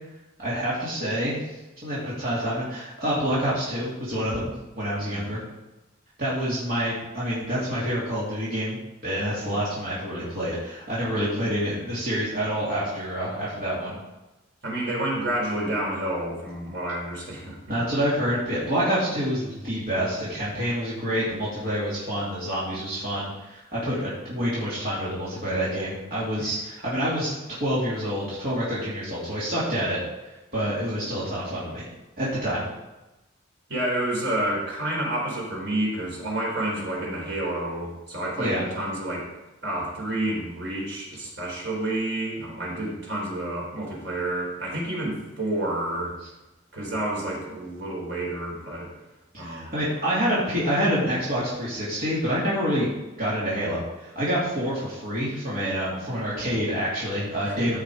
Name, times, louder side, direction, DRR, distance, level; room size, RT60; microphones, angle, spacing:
voice 1, 0.4-5.4 6.2-14.0 17.7-27.3 27.6-30.0 30.5-31.9 32.2-32.7 38.4-38.6 49.3-52.9 53.2-57.8, equal, 45° right, -9 dB, 2.9 m, -27 dB
voice 2, 5.0-5.3 14.6-17.6 26.4-26.5 33.7-39.3 39.6-46.2 46.7-48.9 49.4-49.8 57.5-57.7, right 1 dB, 65° right, -3 dB, 3.9 m, -29 dB
14.5 x 5.8 x 5.0 m, 1.0 s
head